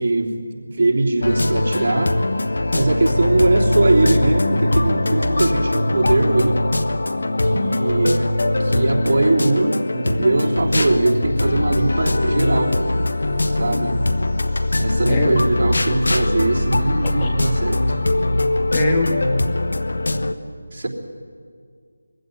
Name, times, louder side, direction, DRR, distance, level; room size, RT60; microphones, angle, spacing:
voice 1, 0.0-2.2 2.7-6.6 7.4-8.3 8.6-12.8 13.5-14.0 14.8-18.0 20.7-20.9, right 2 dB, 40° right, -4 dB, 3.3 m, -20 dB
sound 1, 1.2-20.3, left 2 dB, 70° left, 1.2 m, -21 dB
voice 2, 18.7-19.1, left 2 dB, 15° left, -1 dB, 1.5 m, -22 dB
21.0 x 16.0 x 9.6 m, 2.1 s
figure-of-eight pair, 165°, 0 cm